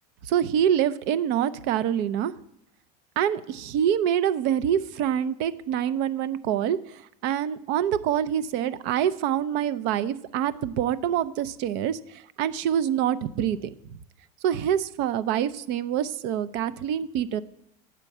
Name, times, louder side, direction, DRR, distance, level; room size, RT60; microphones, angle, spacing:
voice 1, 0.2-2.3 3.2-13.7 14.4-17.4, right 9 dB, 55° right, 15 dB, 0.5 m, -26 dB
9.0 x 4.4 x 7.2 m, 0.78 s
supercardioid pair, 115°, 21 cm